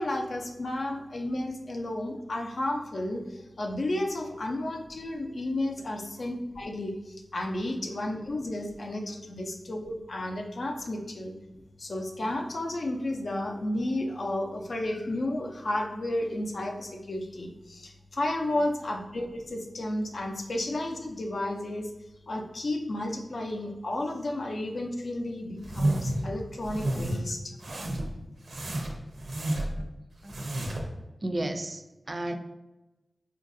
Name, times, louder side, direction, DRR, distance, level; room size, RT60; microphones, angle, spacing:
voice 1, 0.0-11.4 11.8-21.9 22.3-27.5 29.4-29.5, left 1 dB, 70° left, 2 dB, 0.5 m, -32 dB
sound 1, 25.6-26.2 26.6-27.2 27.6-28.1 28.5-29.8 30.2-30.9, right 1 dB, 85° right, 0.6 m, -30 dB
voice 2, 31.2-32.3, right 1 dB, 45° right, 6 dB, 0.3 m, -34 dB
3.9 x 2.5 x 2.5 m, 1.0 s
wide cardioid pair, 60°, 0 cm